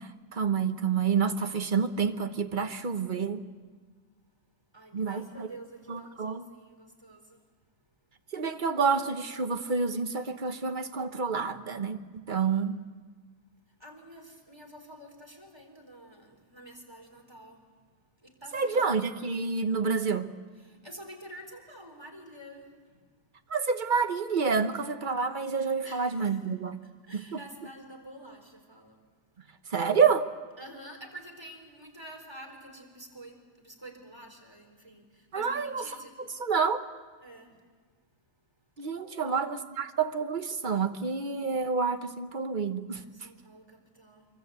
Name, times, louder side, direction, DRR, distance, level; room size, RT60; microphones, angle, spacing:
voice 1, 0.0-3.4 4.9-5.5 5.9-6.5 8.3-12.0 12.3-12.8 18.5-20.3 23.5-26.8 27.1-27.4 29.7-30.3 35.3-35.8 36.2-36.8 38.8-43.0, right 5 dB, 35° right, 8 dB, 1.1 m, -28 dB
voice 2, 4.7-7.4 13.8-17.6 18.2-18.9 20.6-23.0 25.8-26.4 26.8-29.0 30.6-36.1 37.2-37.5 38.8-39.5 42.9-44.3, right 1 dB, 15° right, 2 dB, 4.2 m, -48 dB
26.5 x 24.0 x 8.2 m, 1.5 s
omnidirectional pair, 1.7 m